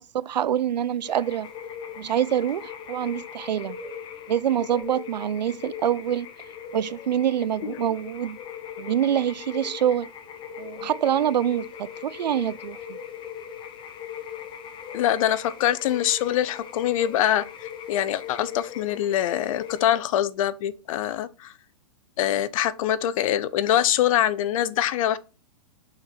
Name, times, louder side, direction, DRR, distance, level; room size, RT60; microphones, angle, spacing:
voice 1, 0.1-1.5 2.0-3.8 4.3-6.3 6.7-8.4 8.8-10.1 10.6-13.0, right 10 dB, 85° right, 0.4 m, -25 dB
sound 1, 1.0-19.9, left 8 dB, 25° left, 0.8 m, -39 dB
voice 2, 14.9-21.5 22.2-25.2, left 11 dB, 55° left, 0.7 m, -24 dB
6.3 x 3.8 x 4.4 m
hypercardioid pair, 125°, 21 cm